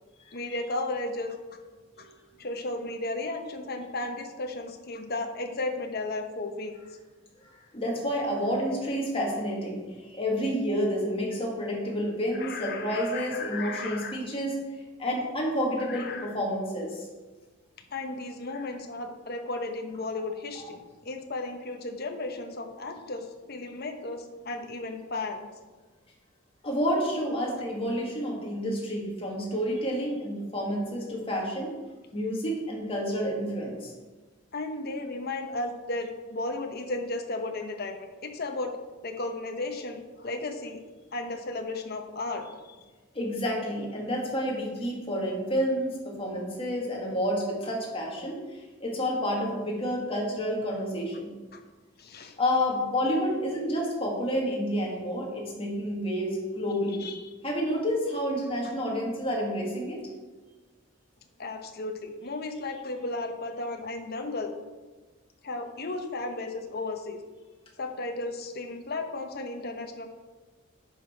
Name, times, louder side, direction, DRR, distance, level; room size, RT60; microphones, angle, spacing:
voice 1, 0.3-1.4 2.0-2.1 2.4-6.7 12.3-14.2 15.9-16.4 17.9-25.5 34.5-38.8 39.0-40.8 41.1-42.8 51.5-51.6 52.0-52.3 57.0-57.3 61.4-64.6 65.4-67.2 67.8-70.1, left 2 dB, 50° left, 5 dB, 1.0 m, -34 dB
voice 2, 7.4-14.5 15.0-17.1 26.6-31.7 32.1-33.9 43.1-51.3 52.4-57.0 57.4-60.0, equal, 30° left, -2 dB, 2.1 m, -29 dB
10.0 x 5.9 x 4.5 m, 1.3 s
head